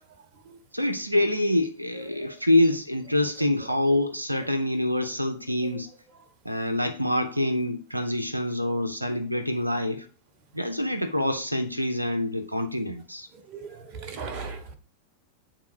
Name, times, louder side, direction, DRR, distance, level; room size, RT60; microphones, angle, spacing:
voice 1, 0.7-5.9 6.4-10.1 10.5-13.3, left 1 dB, 90° right, 0.6 m, -26 dB
voice 2, 13.9-14.7, right 5 dB, 40° right, 1.1 m, -36 dB
9.1 x 3.7 x 4.7 m
figure-of-eight pair, 90°, 0 cm